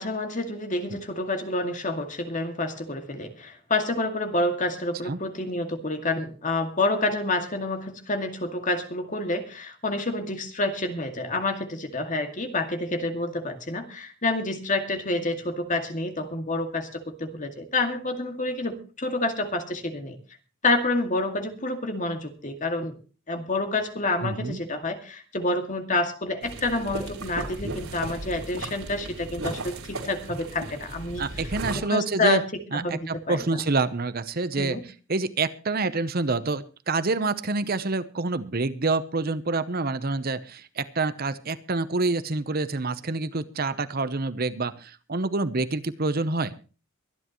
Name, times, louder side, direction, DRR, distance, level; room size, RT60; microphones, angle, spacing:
voice 1, 0.0-20.2 20.6-23.0 23.3-31.2 31.7-32.4 32.8-33.6 34.6-34.8, left 2 dB, 35° left, 6 dB, 2.2 m, -28 dB
voice 2, 24.2-24.6 31.2-32.4 32.7-34.8 35.1-46.5, right 3 dB, 45° right, 14 dB, 0.8 m, -27 dB
sound 1, 26.4-31.8, right 2 dB, 85° right, 4.1 m, -36 dB
23.5 x 10.5 x 3.1 m, 0.35 s
head